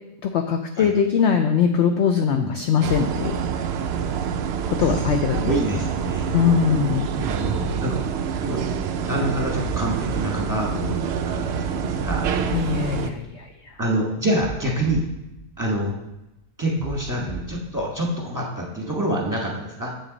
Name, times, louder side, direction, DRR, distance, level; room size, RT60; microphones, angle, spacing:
voice 1, 0.2-3.4 4.7-5.5 6.3-7.1 12.5-13.7, left 7 dB, 70° left, 5 dB, 0.7 m, -21 dB
sound 1, 2.8-4.1 4.8-6.5 7.2-8.9 9.6-11.3 12.0-13.7 14.4-16.1 16.8-18.2, right 3 dB, 25° left, 2.8 m, -37 dB
sound 2, 2.8-13.1, right 7 dB, 80° right, 0.5 m, -26 dB
voice 2, 5.4-6.4 7.2-8.0 8.4-12.3 13.8-15.0 15.6-15.9 16.6-19.9, right 1 dB, 15° right, -2 dB, 1.2 m, -26 dB
7.8 x 6.5 x 3.9 m, 0.93 s
omnidirectional pair, 1.6 m